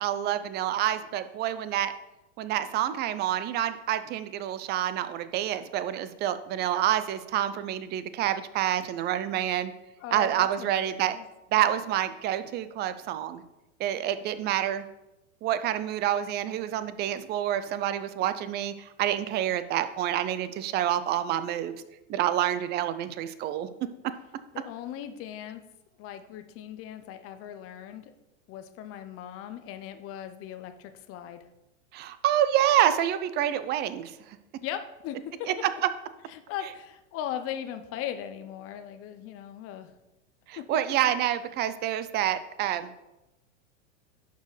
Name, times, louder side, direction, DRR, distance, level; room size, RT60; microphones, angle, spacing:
voice 1, 0.0-1.9 2.4-9.7 10.1-11.2 11.5-13.4 13.8-14.9 15.4-21.7 22.1-23.7 31.9-34.2 35.5-35.6 40.5-42.9, right 11 dB, 30° right, 12 dB, 0.4 m, -28 dB
voice 2, 10.0-11.2 24.5-25.6 26.0-28.1 28.5-31.4 34.6-35.5 36.3-39.9 40.6-40.7, left 10 dB, 35° left, 9 dB, 0.7 m, -38 dB
11.0 x 4.5 x 3.2 m, 0.97 s
hypercardioid pair, 110°, 38 cm